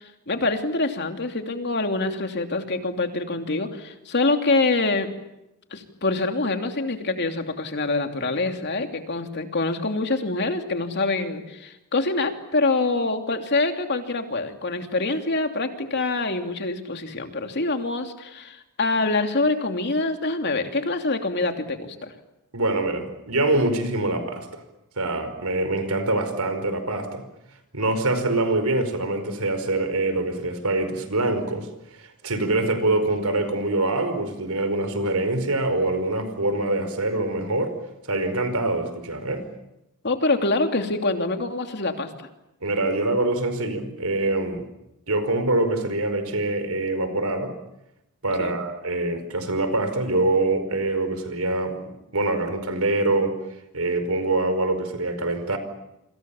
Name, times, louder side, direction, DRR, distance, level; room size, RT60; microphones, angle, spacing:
voice 1, 0.0-5.1 5.7-22.1 40.0-42.3 48.4-48.6, left 3 dB, 50° left, 5 dB, 2.9 m, -25 dB
voice 2, 22.5-24.6 25.0-27.2 27.7-31.7 31.9-37.7 38.1-39.4 42.6-44.6 45.1-47.5 48.2-51.8 52.1-53.4 53.7-55.6, right 2 dB, 75° right, 10 dB, 5.0 m, -24 dB
28.5 x 26.0 x 7.2 m, 0.89 s
head